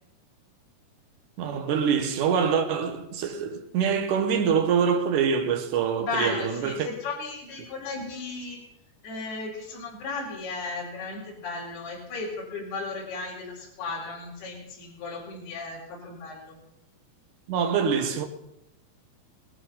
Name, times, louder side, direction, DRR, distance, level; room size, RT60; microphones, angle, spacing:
voice 1, 1.4-6.9 17.5-18.2, right 6 dB, 65° right, 2.1 m, -25 dB
voice 2, 6.0-8.6 9.0-16.6, left 3 dB, 60° left, 6.2 m, -35 dB
19.5 x 12.5 x 5.6 m
omnidirectional pair, 5.1 m